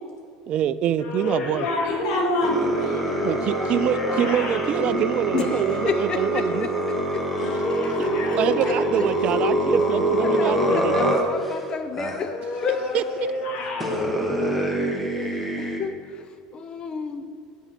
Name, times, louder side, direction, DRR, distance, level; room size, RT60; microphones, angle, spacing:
voice 1, 0.5-1.7 3.2-6.7 7.7-11.2 12.9-13.0, right 10 dB, 45° right, 16 dB, 0.4 m, -25 dB
sound 1, 1.0-6.0 7.2-9.8 12.2-14.1, left 2 dB, 55° left, 1.4 m, -30 dB
voice 2, 1.5-4.3 7.4-7.6, left 2 dB, 85° left, -2 dB, 2.6 m, -28 dB
sound 2, 2.4-11.6 12.0-12.2 13.2-13.3 13.8-15.8, right 1 dB, 5° left, 1.4 m, -25 dB
voice 3, 5.3-8.4 8.7-9.1 10.2-13.0 14.9-16.3 16.5-17.2, left 6 dB, 35° left, 10 dB, 0.7 m, -31 dB
7.9 x 7.0 x 5.9 m, 2.2 s
supercardioid pair, 120°, 3 cm